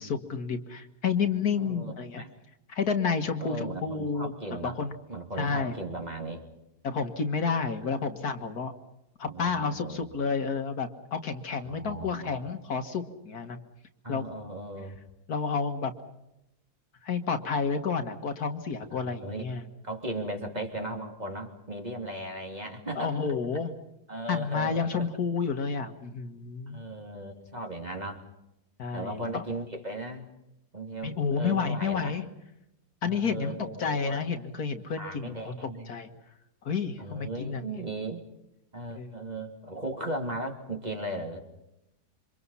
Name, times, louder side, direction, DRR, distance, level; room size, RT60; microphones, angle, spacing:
voice 1, 0.0-2.2 2.7-4.3 4.6-5.0 5.4-5.8 6.8-8.7 9.2-13.6 14.1-14.2 15.3-15.9 17.0-19.7 23.0-23.7 24.3-26.9 28.8-29.4 31.0-32.3 33.0-36.1 36.6-37.6 39.0-39.1, left 5 dB, 65° left, 7 dB, 2.0 m, -30 dB
voice 2, 1.6-2.3 3.4-4.8 5.1-6.4 7.8-8.1 9.2-10.1 11.6-12.4 14.0-15.0 18.9-19.5 19.8-23.2 24.1-25.1 26.7-28.2 28.9-30.3 30.7-32.2 33.0-34.2 35.0-35.9 37.0-38.2 38.7-41.4, right 1 dB, 25° right, 3 dB, 3.2 m, -37 dB
28.0 x 25.0 x 5.6 m, 0.89 s
omnidirectional pair, 1.7 m